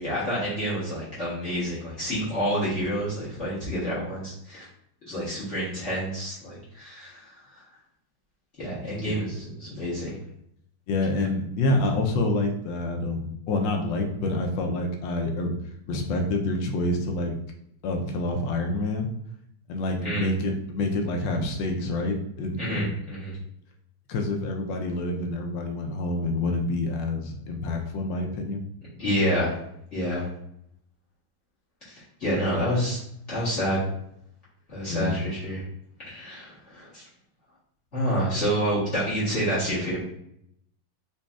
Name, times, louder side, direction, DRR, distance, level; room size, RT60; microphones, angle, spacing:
voice 1, 0.0-4.6 5.1-7.3 8.6-10.1 20.0-20.3 22.6-23.4 29.0-29.6 29.9-30.3 31.8-33.0 33.3-33.8 34.7-35.6 36.0-37.0 37.9-40.0, equal, 40° left, -10 dB, 1.4 m, -28 dB
voice 2, 10.9-15.5 15.9-17.3 17.8-19.1 19.7-22.9 24.1-28.6 34.9-35.1, left 2 dB, 75° left, 3 dB, 1.2 m, -27 dB
4.0 x 3.0 x 2.3 m, 0.73 s
omnidirectional pair, 2.1 m